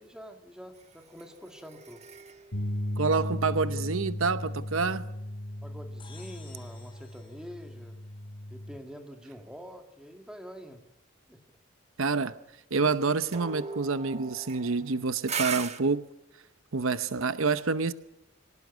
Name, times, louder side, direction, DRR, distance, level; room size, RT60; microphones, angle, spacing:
voice 1, 0.0-2.0 5.6-8.0 8.5-10.8 11.3-11.4, equal, 5° right, 4 dB, 2.0 m, -46 dB
sound 1, 0.8-4.2 13.3-15.8, right 6 dB, 30° right, 1.4 m, -39 dB
sound 2, 2.5-8.8, left 1 dB, 80° left, 3.9 m, -36 dB
voice 2, 3.0-5.0 12.0-12.4 12.7-16.1 16.7-17.9, right 4 dB, 80° right, 13 dB, 0.9 m, -27 dB
sound 3, 6.0-8.6, left 5 dB, 25° left, 4.5 m, -55 dB
24.5 x 18.0 x 9.4 m, 0.91 s
head